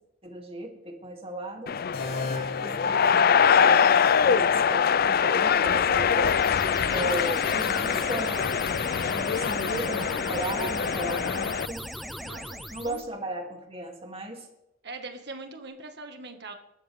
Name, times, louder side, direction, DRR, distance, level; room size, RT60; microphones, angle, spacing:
voice 1, 0.2-1.7 2.5-6.4 6.9-8.5 9.1-11.9 12.7-14.5, right 1 dB, 30° right, 2 dB, 2.8 m, -36 dB
sound 1, 1.7-11.7, left 7 dB, 50° left, 0.5 m, -23 dB
sound 2, 1.9-3.8, left 3 dB, 75° left, 5.3 m, -36 dB
sound 3, 6.2-13.0, equal, ahead, 0.9 m, -38 dB
voice 2, 12.2-13.0 14.8-16.5, right 3 dB, 55° right, 5 dB, 1.9 m, -41 dB
27.5 x 13.0 x 3.6 m, 0.92 s
head